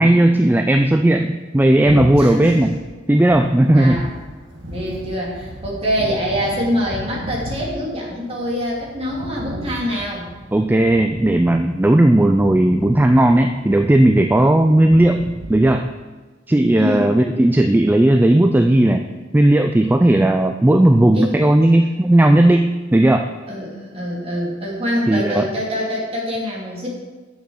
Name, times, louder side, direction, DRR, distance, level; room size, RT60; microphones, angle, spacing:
voice 1, 0.0-2.7 3.1-4.1 10.5-15.9 16.5-19.0 19.3-23.3 25.1-25.5, right 1 dB, 10° right, 6 dB, 0.3 m, -15 dB
sound 1, 1.8-15.7, equal, 80° right, 1.9 m, -34 dB
voice 2, 2.2-2.5 3.7-4.1 4.7-10.3 16.8-17.1 21.1-21.4 23.5-26.9, equal, 30° right, -4 dB, 2.7 m, -24 dB
8.2 x 7.1 x 6.3 m, 1.3 s
head